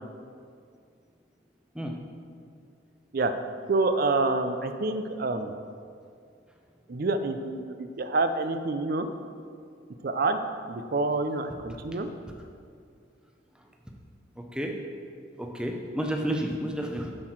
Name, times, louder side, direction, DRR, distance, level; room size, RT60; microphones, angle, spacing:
voice 1, 3.7-5.5 6.9-9.1 10.0-10.4 10.7-12.1, right 3 dB, 50° right, 8 dB, 0.4 m, -27 dB
voice 2, 14.4-14.7 15.4-17.1, right 1 dB, 5° right, 1 dB, 0.6 m, -31 dB
7.6 x 6.3 x 4.4 m, 2.3 s
head